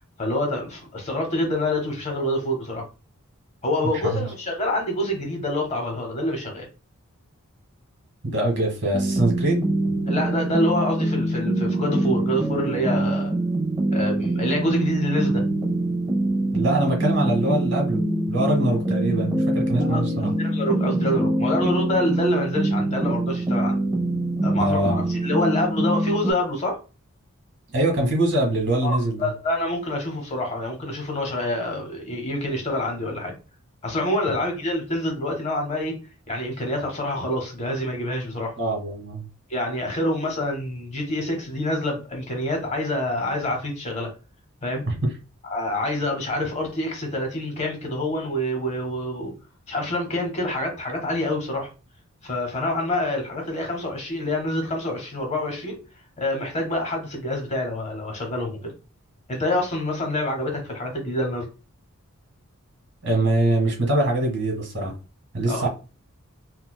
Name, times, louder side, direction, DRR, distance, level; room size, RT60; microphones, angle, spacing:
voice 1, 0.2-2.9 3.6-6.7 10.1-13.3 13.9-15.4 19.8-23.8 24.4-26.8 28.8-33.3 33.8-35.9 36.3-38.5 39.5-44.1 44.6-44.8 45.5-49.3 49.7-51.7 52.2-55.8 56.2-58.7 59.3-61.5 65.5-65.7, left 1 dB, 30° left, 0.8 m, -26 dB
voice 2, 8.2-9.7 16.5-18.0 18.3-20.3 24.6-25.0 27.7-29.3 38.6-39.2 44.9-45.0 63.0-64.9 65.3-65.7, right 1 dB, 55° right, 1.3 m, -23 dB
sound 1, 8.9-26.3, right 1 dB, 20° right, 0.7 m, -24 dB
4.2 x 2.2 x 2.2 m
head